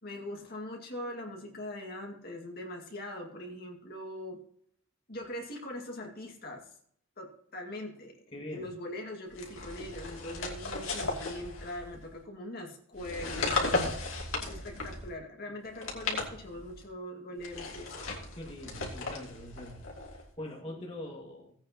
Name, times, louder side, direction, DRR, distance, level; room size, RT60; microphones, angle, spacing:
voice 1, 0.0-4.4 5.1-6.7 7.2-13.9 14.4-17.9 20.7-21.0, left 1 dB, 50° left, 1 dB, 2.2 m, -42 dB
voice 2, 8.3-8.7 15.5-15.6 18.3-21.5, left 1 dB, 30° left, -2 dB, 2.0 m, -43 dB
sound 1, 9.3-12.1 12.9-15.1 15.7-16.8 17.4-20.3, left 3 dB, 80° left, 2.7 m, -36 dB
17.5 x 8.9 x 3.0 m, 0.64 s
head